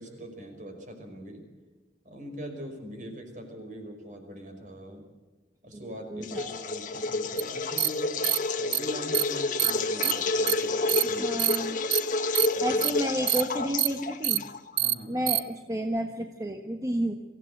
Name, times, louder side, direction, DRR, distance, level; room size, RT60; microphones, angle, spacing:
voice 1, 0.0-1.4 2.1-5.0 5.6-11.4 12.5-12.8 14.8-15.2, equal, 45° right, 4 dB, 5.2 m, -42 dB
voice 2, 5.7-6.6 11.2-11.8 12.6-14.4 15.1-17.2, right 1 dB, 20° right, 4 dB, 1.2 m, -31 dB
sound 1, 6.2-14.8, left 3 dB, 45° left, 1.5 m, -29 dB
sound 2, 7.4-7.5 7.8-7.9 8.2-8.4 8.7-8.8 9.1-9.2 9.6-9.7 10.0-10.1 10.5-10.6 10.9-11.0 11.4-11.6 11.9-12.0 12.3-12.5 12.8-12.9 13.3-13.4 13.8-13.9 14.2-14.4 14.8-14.9 15.3-15.4, right 16 dB, 70° right, 0.8 m, -24 dB
24.5 x 16.0 x 7.9 m, 1.3 s
head